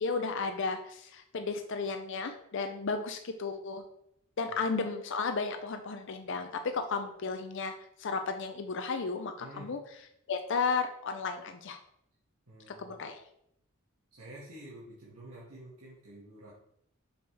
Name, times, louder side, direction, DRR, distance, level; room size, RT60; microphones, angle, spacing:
voice 1, 0.0-3.8 4.4-7.7 8.0-9.8 10.3-11.8 12.7-13.2, left 4 dB, 55° left, 6 dB, 0.5 m, -33 dB
voice 2, 9.4-9.7 12.5-13.0 14.1-16.5, right 1 dB, 75° right, -8 dB, 1.8 m, -49 dB
5.8 x 5.4 x 3.3 m, 0.73 s
head